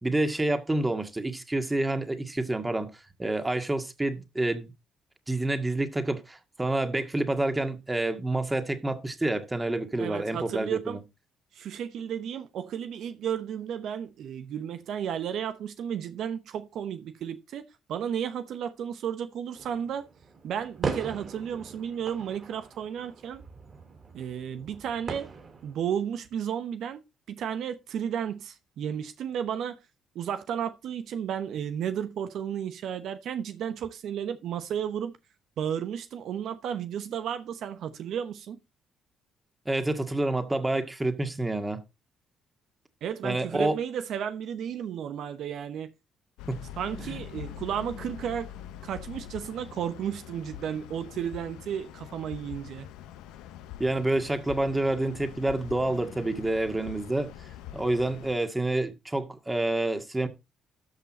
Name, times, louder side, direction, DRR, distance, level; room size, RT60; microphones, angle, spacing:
voice 1, 0.0-2.9 3.2-4.7 5.3-11.0 39.7-41.8 43.2-43.8 46.5-46.6 53.8-57.3 57.7-60.3, right 2 dB, 15° right, 2.0 m, -28 dB
voice 2, 10.0-11.0 11.5-20.1 20.4-23.4 24.1-25.3 25.6-27.0 27.3-29.8 30.1-35.2 35.6-38.6 43.0-45.9 46.8-48.5 48.8-52.9, right 8 dB, 70° right, 0.9 m, -33 dB
sound 1, 19.5-26.0, right 4 dB, 45° right, 4.7 m, -39 dB
sound 2, 46.4-58.3, left 11 dB, 90° left, 0.9 m, -44 dB
13.0 x 5.7 x 4.2 m
supercardioid pair, 70°, 0 cm